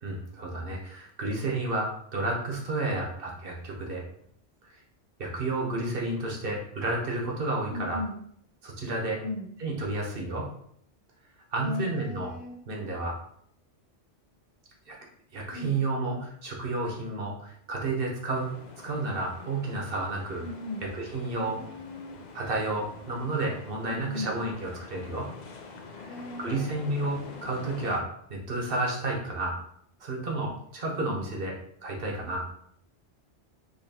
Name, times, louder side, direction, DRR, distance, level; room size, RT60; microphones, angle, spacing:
voice 1, 0.0-4.0 4.6-4.7 5.2-8.0 8.6-9.2 9.6-10.5 11.5-12.3 12.7-13.2 14.9-15.0 15.3-20.4 20.8-21.6 22.3-25.3 25.9-26.0 26.4-29.6 30.0-32.5, right 2 dB, 55° right, -1 dB, 1.0 m, -31 dB
voice 2, 7.7-8.2 9.2-9.5 11.6-12.6 15.5-15.8 20.3-20.9 21.4-22.2 23.9-24.4 26.0-26.9, left 2 dB, 85° left, -4 dB, 1.4 m, -37 dB
sound 1, 18.3-28.0, left 3 dB, 60° left, 0.4 m, -45 dB
3.9 x 2.8 x 2.7 m, 0.67 s
omnidirectional pair, 1.2 m